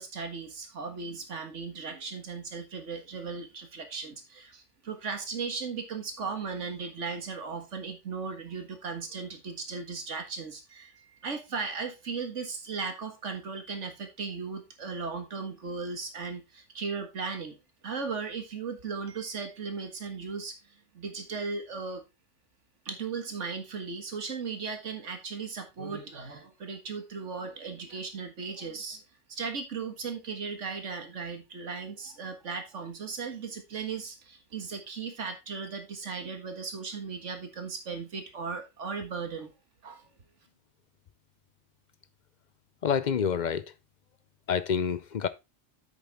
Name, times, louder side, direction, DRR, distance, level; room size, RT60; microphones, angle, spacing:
voice 1, 0.0-17.6 17.8-20.6 20.9-22.0 22.9-29.0 29.3-39.5 39.8-40.1, right 5 dB, 80° right, 1.9 m, -37 dB
voice 2, 42.8-43.7 44.5-45.3, left 7 dB, 50° left, 0.6 m, -27 dB
8.4 x 6.9 x 3.5 m
omnidirectional pair, 1.2 m